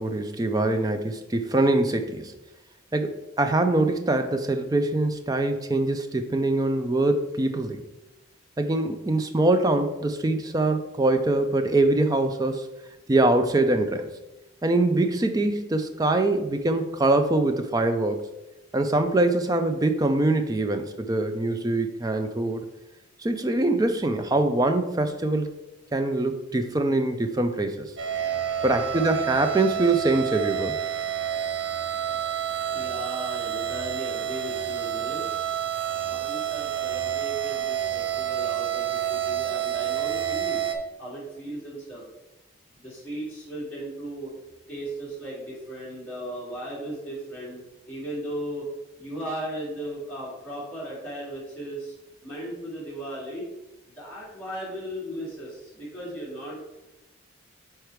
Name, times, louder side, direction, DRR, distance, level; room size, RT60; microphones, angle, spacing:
voice 1, 0.0-2.3 2.9-7.8 8.6-12.7 13.1-14.1 14.6-18.3 18.7-22.7 23.2-25.5 25.9-27.9 28.6-30.8, right 2 dB, 20° right, 7 dB, 0.3 m, -23 dB
sound 1, 28.0-40.8, right 10 dB, 65° right, 0.7 m, -29 dB
voice 2, 28.6-29.2 32.7-35.3 36.1-40.6 41.0-42.0 42.7-44.3 44.7-47.6 47.9-48.7 49.0-51.9 52.2-53.4 54.0-56.6, right 1 dB, 10° left, -9 dB, 2.2 m, -36 dB
5.0 x 4.5 x 4.5 m, 0.99 s
head